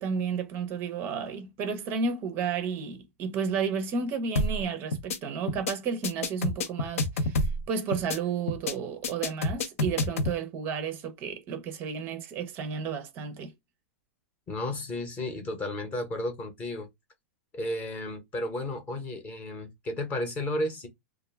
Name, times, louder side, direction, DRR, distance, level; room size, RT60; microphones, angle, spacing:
voice 1, 0.0-13.5, right 6 dB, 30° right, 0.5 m, -32 dB
sound 1, 4.4-4.6 4.9-5.2 5.5-5.7 6.0-7.6 7.9-8.2 8.5-8.7 9.0-10.3, left 2 dB, 85° left, 0.6 m, -28 dB
voice 2, 14.5-16.9 17.5-20.9, left 1 dB, 20° left, 0.8 m, -33 dB
2.3 x 2.2 x 3.2 m
hypercardioid pair, 145°, 7 cm